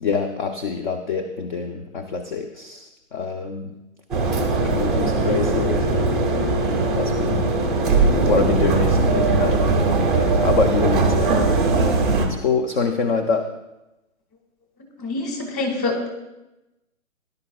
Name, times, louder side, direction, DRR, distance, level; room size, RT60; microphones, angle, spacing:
voice 1, 0.0-3.8 4.7-6.3 6.7-7.5 8.3-9.8 10.1-11.5 12.2-13.5, left 4 dB, 35° left, 7 dB, 0.7 m, -25 dB
sound 1, 4.1-12.3, right 3 dB, ahead, 0.6 m, -20 dB
voice 2, 15.0-16.1, left 2 dB, 20° left, 2 dB, 2.0 m, -25 dB
18.0 x 11.0 x 2.4 m, 0.96 s
hypercardioid pair, 145°, 41 cm